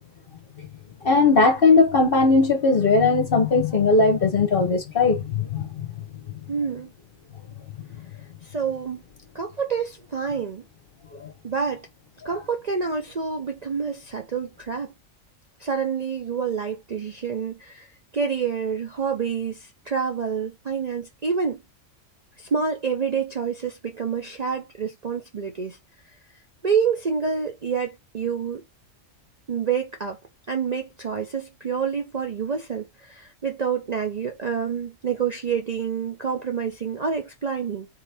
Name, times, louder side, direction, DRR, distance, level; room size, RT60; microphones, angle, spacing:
voice 1, 1.0-5.7 11.2-11.3, left 3 dB, 50° left, 1.0 m, -18 dB
voice 2, 6.5-6.9 8.4-9.0 9.3-10.6 11.4-11.9 12.2-14.9 15.6-17.9 18.1-21.6 22.4-25.8 26.6-28.6 29.5-30.2 30.5-37.9, right 6 dB, 45° right, 0.5 m, -27 dB
4.2 x 3.6 x 3.4 m
omnidirectional pair, 1.4 m